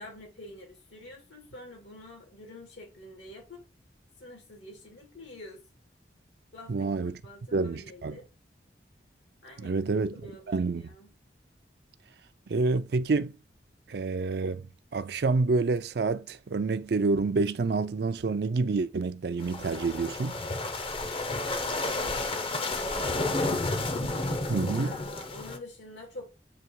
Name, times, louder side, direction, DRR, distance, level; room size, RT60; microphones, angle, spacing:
voice 1, 0.0-3.6 4.2-5.6 6.5-6.9 7.2-8.3 9.4-9.9 10.1-11.1 21.3-23.7 24.8-26.3, left 1 dB, 85° left, 2.5 m, -47 dB
voice 2, 6.7-7.2 7.5-8.2 9.6-10.9 12.5-13.4 13.9-14.7 14.9-20.3 24.5-25.0, right 3 dB, 60° right, 0.4 m, -28 dB
sound 1, 19.4-25.6, left 2 dB, 30° left, 0.6 m, -31 dB
8.2 x 2.9 x 4.6 m
head